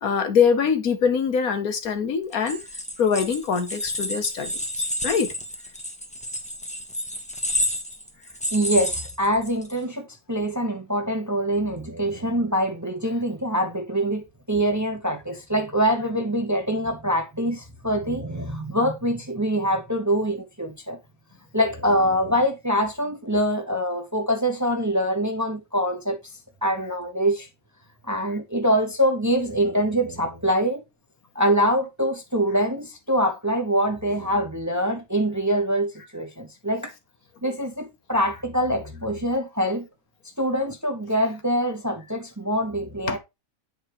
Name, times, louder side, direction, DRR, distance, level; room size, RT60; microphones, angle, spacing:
voice 1, 0.0-2.6 3.0-4.5 5.0-5.3 43.1-43.2, left 6 dB, 80° left, 1.6 m, -23 dB
sound 1, 2.3-9.8, left 1 dB, 5° left, 1.2 m, -30 dB
voice 2, 8.5-21.0 21.5-26.2 26.6-27.5 28.1-30.8 31.3-36.9 37.4-39.9 40.4-43.2, equal, 15° right, 0.8 m, -24 dB
8.7 x 4.8 x 3.1 m
omnidirectional pair, 1.5 m